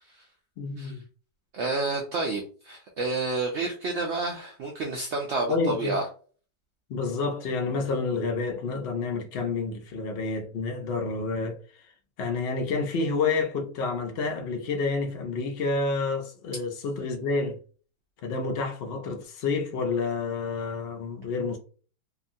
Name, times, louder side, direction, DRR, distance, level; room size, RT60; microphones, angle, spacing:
voice 1, 0.6-1.0 5.5-6.0 6.9-11.6 12.2-17.6 18.2-21.6, left 4 dB, 75° left, 0.5 m, -29 dB
voice 2, 1.5-6.0, right 3 dB, 80° right, 0.6 m, -29 dB
2.8 x 2.4 x 2.6 m
omnidirectional pair, 1.7 m